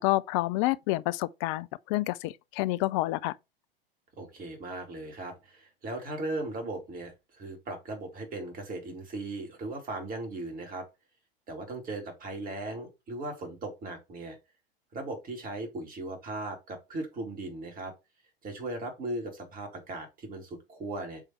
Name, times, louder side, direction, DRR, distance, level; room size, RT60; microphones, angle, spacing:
voice 1, 0.0-3.3, left 19 dB, 35° left, 0.4 m, -28 dB
voice 2, 4.2-10.9 11.5-14.4 14.9-17.9 18.4-21.2, right 2 dB, 30° right, 2.5 m, -38 dB
7.1 x 3.3 x 4.3 m
figure-of-eight pair, 90°, 30 cm